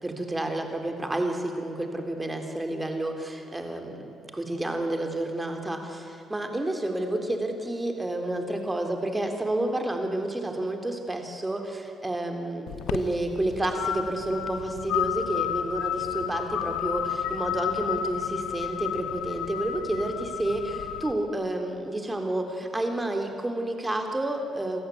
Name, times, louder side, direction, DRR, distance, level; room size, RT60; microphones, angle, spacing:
voice 1, 0.0-24.8, right 1 dB, 15° right, 4 dB, 3.7 m, -30 dB
sound 1, 12.7-21.1, left 10 dB, 90° left, 1.1 m, -32 dB
28.0 x 14.5 x 9.5 m, 3.0 s
cardioid pair, 90°, 0 cm